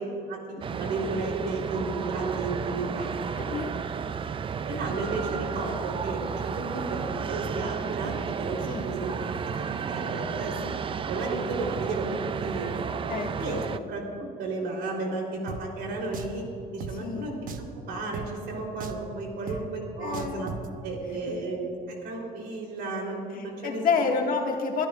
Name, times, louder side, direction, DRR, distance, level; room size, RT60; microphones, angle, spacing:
voice 1, 0.0-3.2 4.7-9.4 9.9-10.7 11.1-12.8 13.4-16.4 16.7-17.3 17.7-20.5 20.8-24.1, right 2 dB, 80° right, -1 dB, 3.6 m, -33 dB
sound 1, 0.6-13.8, right 6 dB, 30° right, 0.4 m, -32 dB
voice 2, 3.3-3.7 8.7-8.9 13.1-13.6 17.0-17.3 20.0-20.4 21.3-21.4 23.3-24.9, left 5 dB, 55° left, 1 dB, 1.9 m, -29 dB
Drum, 15.5-15.6 16.1-16.4 16.8-16.9 17.5-17.7 18.1-18.3 18.8-19.1 19.5-19.6 20.1-20.7, right 6 dB, 55° right, 1.0 m, -36 dB
27.0 x 12.5 x 2.5 m, 2.5 s
cardioid pair, 110°, 17 cm